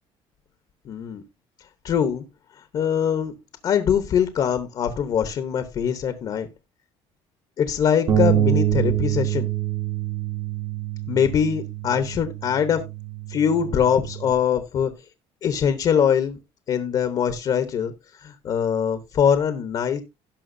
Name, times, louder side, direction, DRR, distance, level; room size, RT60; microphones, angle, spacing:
voice 1, 0.8-1.2 1.8-2.2 2.7-3.3 3.6-6.5 7.6-9.5 11.1-12.8 13.3-14.9 15.4-16.4 16.7-17.9 18.2-20.0, left 8 dB, 40° left, 10 dB, 1.0 m, -22 dB
Bass guitar, 8.1-14.3, right 11 dB, 35° right, 1.1 m, -26 dB
17.0 x 5.9 x 2.6 m, 0.23 s
cardioid pair, 175°, 11 cm